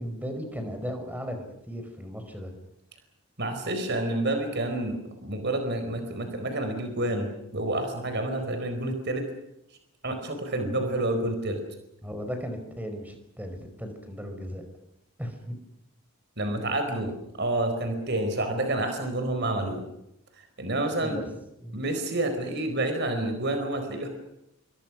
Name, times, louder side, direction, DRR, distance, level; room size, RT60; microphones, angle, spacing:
voice 1, 0.0-2.5 12.0-14.6 15.2-15.5 19.4-19.6 21.0-21.3 21.6-21.8, equal, 5° right, 6 dB, 4.8 m, -36 dB
voice 2, 3.4-9.3 10.0-11.6 16.4-19.8 20.3-21.2 21.7-24.1, right 1 dB, 50° right, 6 dB, 4.5 m, -29 dB
28.5 x 24.0 x 6.2 m, 0.83 s
head